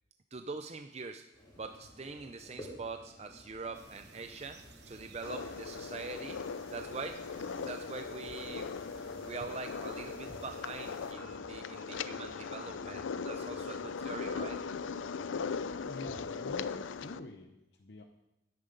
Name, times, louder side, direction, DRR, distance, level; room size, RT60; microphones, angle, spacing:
voice 1, 0.3-1.2 1.6-6.4 6.7-7.2 7.5-8.7 9.0-14.6, right 4 dB, 35° right, 7 dB, 0.5 m, -43 dB
sound 1, 1.3-17.1, equal, 20° left, 3.9 m, -55 dB
sound 2, 3.7-11.1, right 3 dB, 60° right, 1.0 m, -57 dB
sound 3, 5.2-17.2, left 5 dB, 85° left, 0.5 m, -39 dB
voice 2, 15.8-18.0, left 2 dB, 60° left, 5 dB, 0.8 m, -46 dB
12.5 x 10.0 x 5.2 m, 0.93 s
head